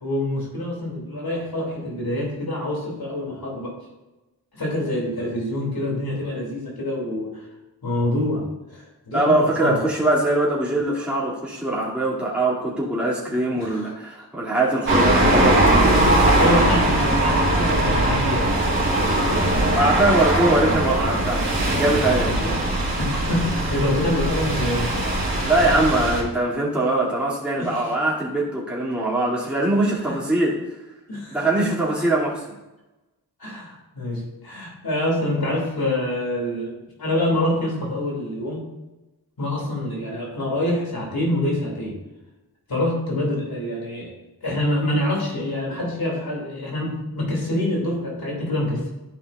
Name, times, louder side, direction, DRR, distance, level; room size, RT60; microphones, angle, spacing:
voice 1, 0.0-3.7 4.5-7.4 7.8-8.4 8.7-9.8 13.5-13.9 15.1-15.4 15.9-18.5 22.2-22.6 23.0-24.8 27.6-27.9 30.0-30.2 31.1-31.7 33.4-38.6 39.4-42.0 42.7-44.1 44.4-48.9, left 1 dB, 70° left, -3 dB, 2.8 m, -26 dB
voice 2, 9.1-16.0 19.7-21.5 21.8-22.4 25.4-30.6 31.3-32.4, right 2 dB, 5° right, -8 dB, 2.6 m, -22 dB
sound 1, 14.9-26.2, right 1 dB, 30° right, 2.8 m, -20 dB
12.0 x 5.5 x 2.5 m, 1.0 s
cardioid pair, 45°, 38 cm